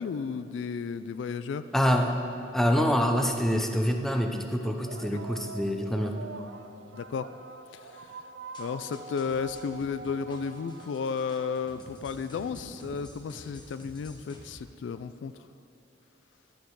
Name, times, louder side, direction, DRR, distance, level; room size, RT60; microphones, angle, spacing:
voice 1, 0.0-1.6 5.1-5.2 6.9-7.3 7.7-8.1 8.6-15.3, left 5 dB, 75° left, 13 dB, 0.3 m, -33 dB
voice 2, 1.7-2.2 2.5-6.2, equal, ahead, 3 dB, 0.6 m, -26 dB
sound 1, 4.6-13.5, right 3 dB, 75° right, 0.6 m, -46 dB
sound 2, 8.5-14.5, left 1 dB, 25° left, 1.2 m, -51 dB
11.0 x 7.1 x 4.7 m, 2.6 s
head